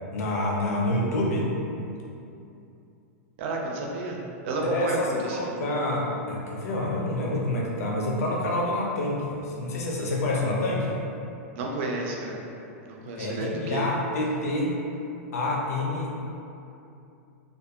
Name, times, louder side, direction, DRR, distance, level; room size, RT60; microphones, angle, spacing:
voice 1, 0.1-1.5 4.6-11.0 13.1-14.8 15.3-16.2, left 1 dB, 80° left, -3 dB, 0.5 m, -27 dB
voice 2, 3.4-5.6 11.6-12.4 12.9-13.9, right 2 dB, 55° right, -1 dB, 0.4 m, -31 dB
2.6 x 2.2 x 2.3 m, 2.7 s
supercardioid pair, 145°, 8 cm